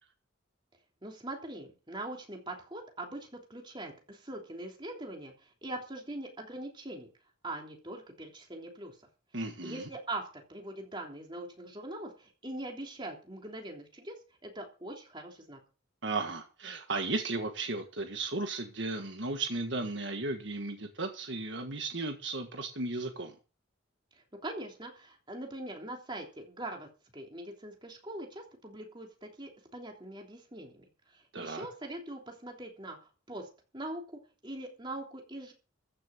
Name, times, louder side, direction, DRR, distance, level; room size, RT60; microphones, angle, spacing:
voice 1, 1.0-7.1 7.4-9.0 9.6-14.2 14.4-15.6 24.4-33.5 33.7-35.5, right 1 dB, 25° right, 1 dB, 3.2 m, -42 dB
voice 2, 9.3-9.9 16.0-23.3 31.3-31.7, right 3 dB, 60° right, 5 dB, 1.6 m, -35 dB
14.5 x 6.6 x 7.5 m, 0.35 s
head